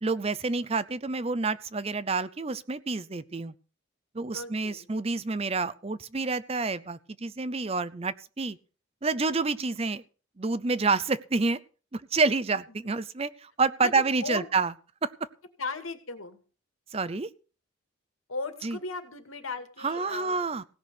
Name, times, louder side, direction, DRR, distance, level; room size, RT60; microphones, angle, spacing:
voice 1, 0.0-3.5 4.1-8.6 9.0-10.0 10.4-11.6 11.9-14.7 15.0-15.1 16.9-17.3 18.6-18.8 19.8-20.6, right 4 dB, 30° right, 16 dB, 0.5 m, -28 dB
voice 2, 4.3-4.9 9.7-9.9 12.8-12.9 13.8-14.5 15.6-16.4 18.3-20.5, left 3 dB, 85° left, 8 dB, 2.3 m, -37 dB
17.0 x 6.2 x 8.2 m, 0.37 s
head